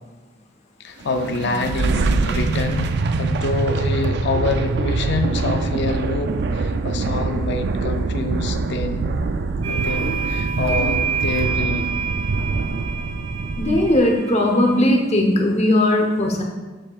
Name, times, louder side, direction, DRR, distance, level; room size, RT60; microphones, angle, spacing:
voice 1, 0.8-9.2 9.7-11.9, left 3 dB, 60° left, 7 dB, 0.5 m, -26 dB
sound 1, 1.0-14.1, right 3 dB, 60° right, 0.4 m, -24 dB
sound 2, 9.6-14.9, right 6 dB, 75° right, 1.1 m, -28 dB
voice 2, 13.6-16.4, left 1 dB, 35° left, 2 dB, 0.9 m, -18 dB
7.4 x 6.6 x 2.4 m, 1.3 s
head